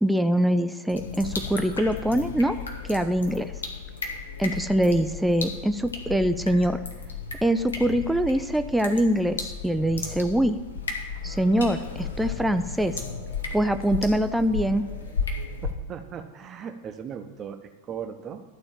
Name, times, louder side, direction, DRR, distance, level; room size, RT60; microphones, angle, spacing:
voice 1, 0.0-2.5 2.9-3.5 4.4-6.8 7.4-10.6 11.2-12.9 13.5-14.8, right 1 dB, 5° right, 9 dB, 0.5 m, -23 dB
sound 1, 0.9-15.7, left 5 dB, 70° left, 1.3 m, -34 dB
voice 2, 15.6-18.4, right 7 dB, 30° right, 7 dB, 0.9 m, -38 dB
12.5 x 4.3 x 7.3 m, 1.1 s
figure-of-eight pair, 90°, 0 cm